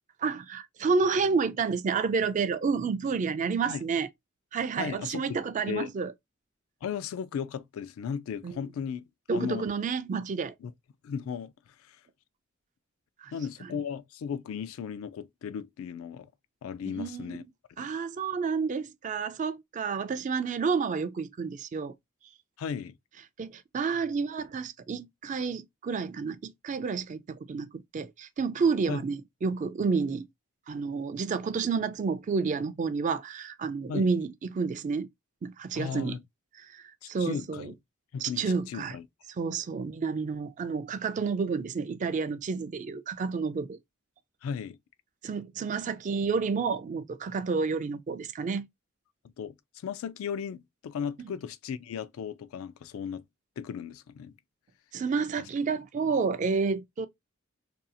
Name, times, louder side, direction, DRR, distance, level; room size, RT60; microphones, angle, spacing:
voice 1, 0.2-4.1 4.5-6.1 8.4-8.6 9.3-10.5 13.2-13.3 13.6-13.7 16.8-17.5 17.8-21.9 23.4-30.3 30.7-35.1 35.4-36.2 36.5-37.7 38.2-38.9 39.4-43.8 45.2-48.7 51.2-51.3 54.9-57.1, right 5 dB, 35° right, 0.3 m, -30 dB
voice 2, 4.8-5.4 5.7-5.9 6.8-9.0 9.3-9.7 10.6-10.7 11.0-11.5 11.9-12.0 13.3-16.3 16.6-17.4 17.8-17.9 22.6-23.0 28.9-29.0 33.9-34.1 35.7-36.2 37.0-37.7 38.1-39.0 44.4-44.8 49.4-49.5 49.8-53.2 53.6-54.3, left 7 dB, 75° left, 0.3 m, -36 dB
2.7 x 2.3 x 2.5 m
head